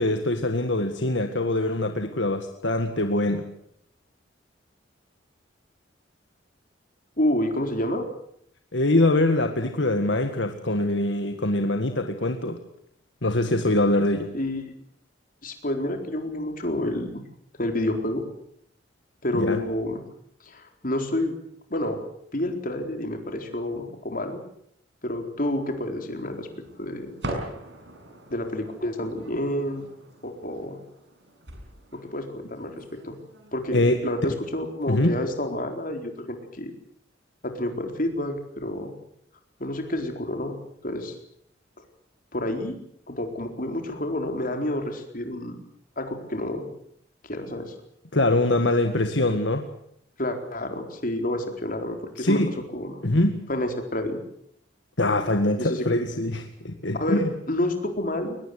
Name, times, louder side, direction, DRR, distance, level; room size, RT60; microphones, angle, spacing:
voice 1, 0.0-3.5 8.7-12.6 13.2-14.3 19.3-19.6 33.7-34.0 34.9-35.1 48.1-49.7 52.2-52.5 53.0-53.5 55.0-57.3, left 2 dB, 70° left, 6 dB, 1.9 m, -23 dB
voice 2, 7.2-8.1 14.3-14.7 15.4-17.2 17.6-18.2 19.2-20.0 20.4-21.3 21.7-22.0 22.3-24.4 25.0-26.5 26.8-27.2 28.3-29.9 30.2-30.8 31.9-33.1 33.5-36.7 37.4-38.9 39.6-40.6 40.8-41.1 42.3-42.8 43.1-45.6 46.0-46.7 47.2-47.7 50.2-52.4 52.7-53.0 53.5-54.2 55.6-55.8 57.0-58.4, left 1 dB, 50° left, 5 dB, 4.3 m, -29 dB
sound 1, 26.1-35.0, right 1 dB, 70° right, 7.1 m, -42 dB
22.5 x 20.0 x 8.0 m, 0.70 s
head